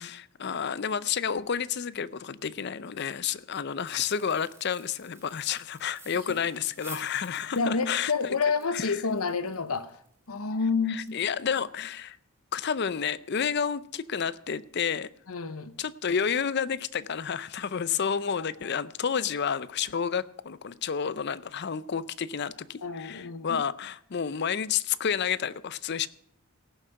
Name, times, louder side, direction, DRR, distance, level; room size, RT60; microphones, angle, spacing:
voice 1, 0.0-8.1 8.7-9.0 10.9-12.2 12.5-15.1 15.8-26.1, left 7 dB, 50° left, 0.5 m, -30 dB
sound 1, 3.8-11.6 12.0-12.1 12.5-12.7 13.1-13.3, right 2 dB, 10° right, 3.3 m, -52 dB
voice 2, 7.6-9.9 10.3-11.2 15.3-15.7 22.8-23.6, left 4 dB, 80° left, 0.9 m, -29 dB
17.0 x 7.4 x 5.7 m
head